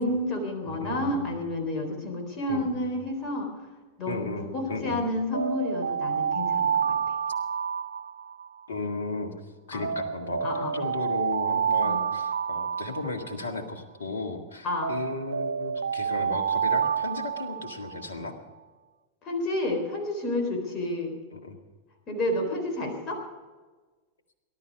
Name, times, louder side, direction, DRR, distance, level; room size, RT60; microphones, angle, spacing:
voice 1, 0.0-3.5 4.0-7.0 9.7-9.9 10.4-10.7 11.8-12.0 14.6-14.9 19.2-21.2 22.1-23.2, left 1 dB, 30° left, 3 dB, 3.9 m, -30 dB
voice 2, 0.7-1.3 2.5-2.8 4.1-5.0 8.7-9.3 9.7-18.3 21.3-21.6, left 3 dB, 70° left, 6 dB, 1.8 m, -35 dB
Alarm, 5.3-8.6 9.8-13.6 14.8-18.1, right 7 dB, 75° right, 0.4 m, -29 dB
19.0 x 12.0 x 5.3 m, 1.3 s
figure-of-eight pair, 90°, 0 cm